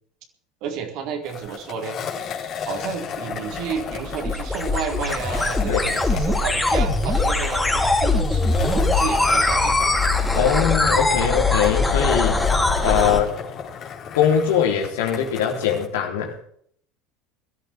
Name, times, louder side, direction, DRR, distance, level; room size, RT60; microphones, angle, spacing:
voice 1, 0.6-2.0 2.7-9.9 13.0-13.2, right 7 dB, 60° right, 2 dB, 4.2 m, -31 dB
Skateboard, 1.2-15.9, left 7 dB, 50° left, 4.2 m, -34 dB
sound 1, 3.3-13.2, left 2 dB, 10° left, 3.3 m, -21 dB
voice 2, 10.3-12.4 12.8-13.3 14.1-16.4, left 8 dB, 75° left, 2 dB, 3.8 m, -21 dB
22.0 x 13.5 x 3.7 m, 0.63 s
hypercardioid pair, 80°, 0 cm